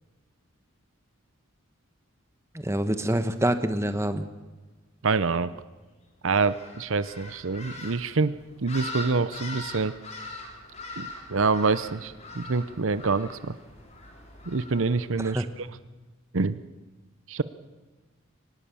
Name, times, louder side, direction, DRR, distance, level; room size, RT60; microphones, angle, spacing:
voice 1, 2.5-4.3 15.2-15.5, right 1 dB, 15° right, 9 dB, 1.1 m, -26 dB
voice 2, 5.0-5.5 6.2-8.4 8.6-9.9 11.0-13.5 14.5-15.4 16.3-16.6 17.3-17.4, right 4 dB, 65° right, 15 dB, 0.7 m, -26 dB
sound 1, 6.4-15.4, left 2 dB, 30° left, 4.6 m, -42 dB
24.5 x 19.0 x 7.0 m, 1.2 s
head